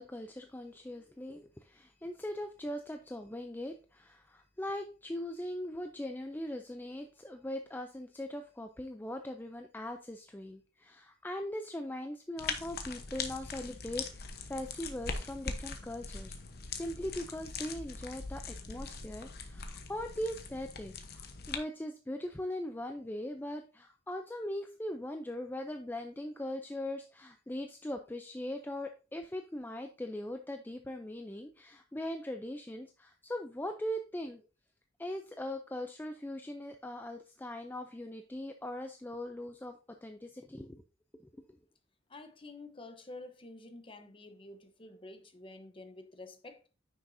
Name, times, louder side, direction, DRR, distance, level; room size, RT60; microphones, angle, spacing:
voice 1, 0.0-16.3 16.8-34.4 35.0-40.8 41.1-41.2, left 1 dB, 10° left, 0.4 m, -40 dB
sound 1, 12.4-21.6, left 5 dB, 55° left, 1.0 m, -41 dB
voice 2, 42.1-46.7, left 2 dB, 25° left, 0.9 m, -49 dB
9.5 x 6.1 x 2.7 m
head